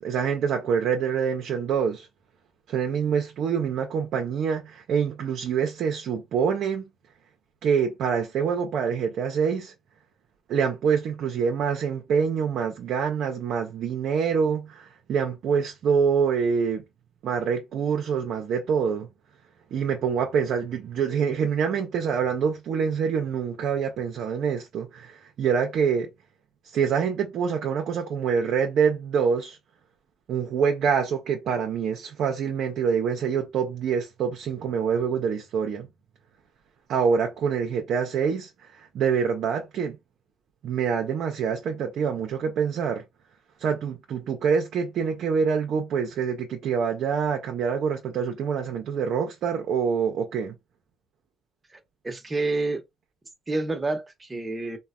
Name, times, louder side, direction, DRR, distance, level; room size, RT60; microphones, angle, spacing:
voice 1, 0.0-2.1 2.7-6.9 7.6-9.7 10.5-16.8 17.2-19.1 19.7-26.1 26.7-29.6 30.3-35.9 36.9-40.0 40.6-43.0 43.6-50.6, right 6 dB, 75° right, 0.5 m, -26 dB
voice 2, 51.7-52.8 53.5-54.8, right 2 dB, 25° right, 0.8 m, -29 dB
3.2 x 2.1 x 2.3 m
cardioid pair, 90°, 0 cm